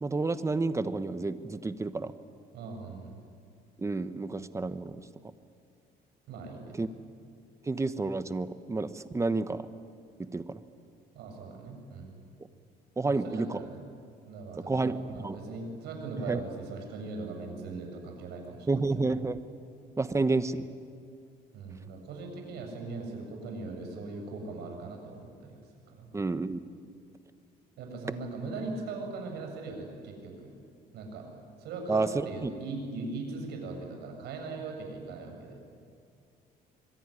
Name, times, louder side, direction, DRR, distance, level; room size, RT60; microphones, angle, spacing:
voice 1, 0.0-2.1 3.8-5.0 6.7-6.9 7.6-9.7 10.2-10.6 13.0-13.6 14.7-15.4 16.3-16.4 18.7-19.4 20.0-20.7 26.1-26.6 31.9-32.5, right 3 dB, 15° right, 12 dB, 1.3 m, -30 dB
voice 2, 2.5-3.2 6.3-6.8 11.1-12.2 13.0-13.8 14.3-19.0 21.5-25.6 25.9-26.1 27.8-30.5 30.9-31.3 31.6-35.6, right 3 dB, 75° right, 3 dB, 7.2 m, -40 dB
25.0 x 22.5 x 10.0 m, 2.3 s
cardioid pair, 110°, 17 cm